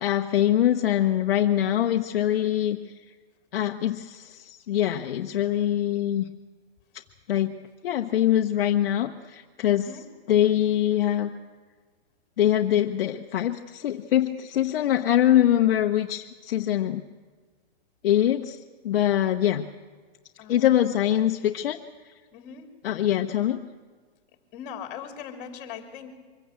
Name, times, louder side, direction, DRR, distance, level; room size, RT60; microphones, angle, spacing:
voice 1, 0.0-3.0 3.5-6.3 7.3-7.6 7.8-9.9 10.3-11.3 12.4-17.0 18.0-19.7 20.5-21.8 22.8-23.6, left 11 dB, 60° left, 5 dB, 0.9 m, -23 dB
voice 2, 9.7-10.0 20.4-20.7 22.3-22.7 24.5-26.1, left 8 dB, 30° left, 5 dB, 2.9 m, -40 dB
24.0 x 16.0 x 8.1 m, 1.5 s
hypercardioid pair, 160°, 32 cm